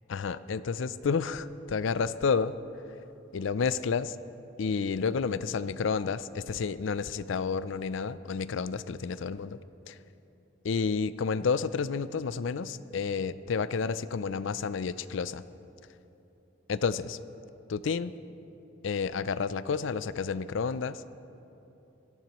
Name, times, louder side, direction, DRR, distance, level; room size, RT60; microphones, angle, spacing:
voice 1, 0.1-2.5 3.3-4.2 4.6-9.6 9.9-10.0 10.6-15.4 16.7-17.2 17.7-18.1 18.8-21.0, left 5 dB, 70° left, 15 dB, 0.4 m, -30 dB
21.5 x 14.5 x 3.0 m, 2.9 s
head